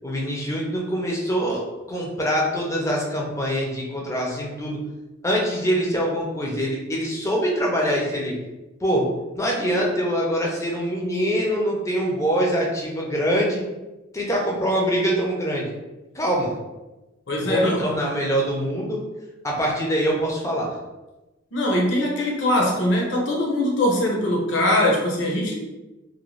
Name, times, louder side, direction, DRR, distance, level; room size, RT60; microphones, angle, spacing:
voice 1, 0.0-4.8 5.2-8.3 8.8-9.1 9.3-13.6 14.1-15.7 16.1-16.5 17.4-19.0 19.4-20.8, equal, 15° left, -2 dB, 0.4 m, -24 dB
voice 2, 17.3-17.9 21.5-25.5, left 1 dB, 60° left, -1 dB, 0.6 m, -21 dB
2.5 x 2.1 x 3.0 m, 1.0 s
head